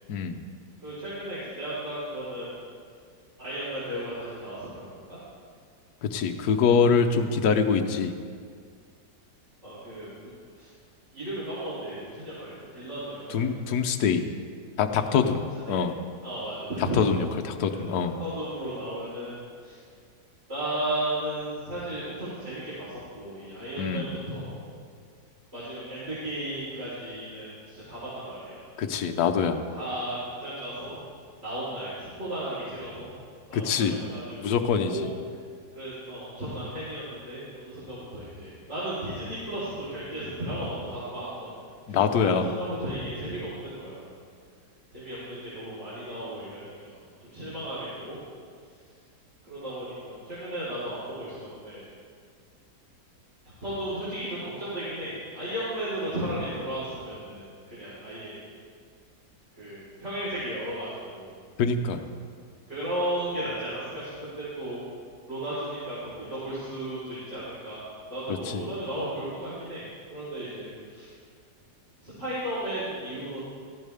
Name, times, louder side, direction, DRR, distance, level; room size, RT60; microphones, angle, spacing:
voice 1, 0.1-0.4 6.1-8.1 13.3-14.2 14.8-15.9 17.0-18.2 23.8-24.1 28.8-29.6 33.5-34.0 34.4-35.1 41.9-42.5 61.6-62.0 68.3-68.7, left 6 dB, 65° left, 6 dB, 1.3 m, -24 dB
voice 2, 0.8-2.5 3.4-5.2 9.6-10.1 10.5-10.7 11.1-13.5 14.9-15.0 15.3-15.8 16.2-17.2 17.7-17.9 18.2-19.3 19.6-19.8 20.5-24.6 25.5-28.6 29.7-31.0 31.4-33.1 33.5-35.1 35.8-41.6 41.9-44.1 44.9-48.2 49.5-51.9 53.6-58.4 59.5-61.4 62.7-64.8 65.3-71.1 72.0-73.4, right 1 dB, 40° right, -12 dB, 4.7 m, -35 dB
17.5 x 14.5 x 3.5 m, 2.1 s
omnidirectional pair, 1.8 m